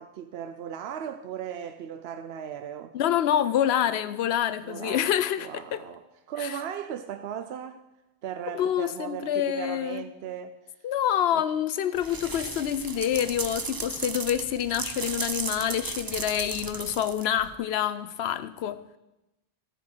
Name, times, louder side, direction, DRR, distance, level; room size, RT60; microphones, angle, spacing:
voice 1, 0.0-2.9 4.6-5.1 5.4-7.8 8.2-10.6 11.3-11.4, right 9 dB, 85° right, 0.9 m, -37 dB
voice 2, 2.9-5.8 6.4-6.6 8.5-10.0 10.8-18.8, left 10 dB, 85° left, 0.9 m, -27 dB
sound 1, 12.0-17.5, right 4 dB, 35° right, 0.4 m, -35 dB
14.5 x 7.2 x 4.5 m
omnidirectional pair, 1.0 m